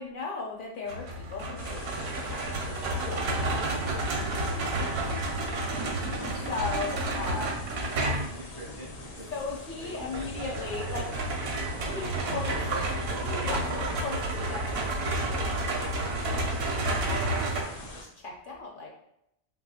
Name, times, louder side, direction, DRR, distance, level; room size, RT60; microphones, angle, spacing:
voice 1, 0.0-3.3 6.4-7.6 9.3-11.1 11.8-12.6 13.2-18.9, left 4 dB, 60° left, -1 dB, 0.7 m, -38 dB
sound 1, 0.9-8.4 10.1-17.6, right 2 dB, 70° right, 0.8 m, -31 dB
sound 2, 1.6-18.0, left 1 dB, 90° left, 0.9 m, -42 dB
voice 2, 3.0-5.7 8.0-9.3 9.8-10.7 10.9-11.3 11.9-13.0 13.3-13.8, right 2 dB, 30° right, -3 dB, 0.4 m, -46 dB
3.0 x 2.3 x 2.7 m, 0.78 s
omnidirectional pair, 1.1 m